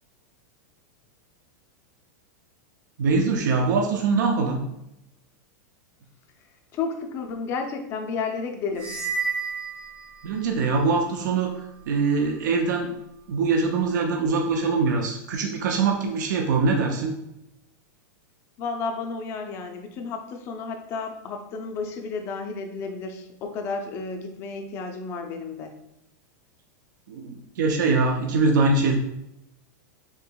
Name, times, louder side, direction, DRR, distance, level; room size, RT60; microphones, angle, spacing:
voice 1, 3.0-4.6 10.2-11.5 11.9-12.9 13.3-17.1 27.1-29.0, right 4 dB, 75° right, 3 dB, 0.5 m, -23 dB
voice 2, 6.7-9.0 18.6-25.7, left 4 dB, 25° left, 4 dB, 0.4 m, -32 dB
sound 1, 8.7-10.6, right 5 dB, 20° right, 0.6 m, -31 dB
4.5 x 2.8 x 2.2 m, 0.84 s
supercardioid pair, 165°, 10 cm